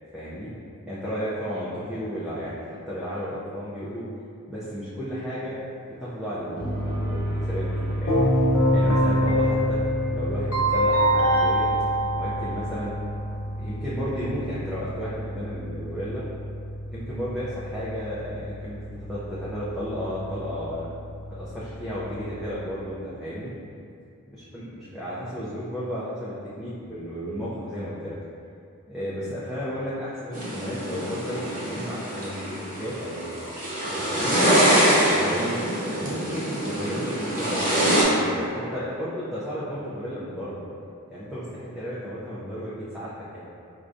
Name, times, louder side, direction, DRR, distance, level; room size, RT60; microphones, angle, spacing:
voice 1, 0.1-0.5 0.8-4.1 4.5-5.6 5.9-8.3 8.7-9.8 10.1-11.7 12.1-13.0 13.4-16.2 16.9-20.9 21.3-23.5 24.5-28.2 28.9-32.4 32.6-33.3 33.9-34.4 35.1-40.6 41.1-43.5, equal, ahead, -11 dB, 0.4 m, -33 dB
sound 1, 6.6-22.6, equal, 70° right, 1.1 m, -33 dB
Keyboard (musical), 8.1-13.0, equal, 65° left, 0.6 m, -23 dB
sound 2, 30.3-38.0, right 1 dB, 40° right, 0.8 m, -24 dB
4.7 x 2.2 x 2.5 m, 2.5 s
head